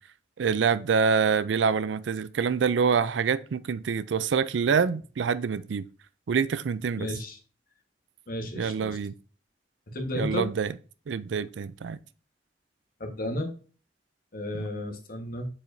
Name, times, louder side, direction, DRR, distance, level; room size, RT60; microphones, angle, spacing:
voice 1, 0.4-5.8 6.3-7.1 8.6-9.1 10.2-10.7 11.1-12.0 14.5-14.6, right 6 dB, 80° right, 0.4 m, -26 dB
voice 2, 7.0-7.4 8.3-9.0 9.9-10.5 13.0-13.5 14.3-15.5, left 1 dB, 55° left, 1.4 m, -33 dB
7.5 x 4.8 x 2.7 m
head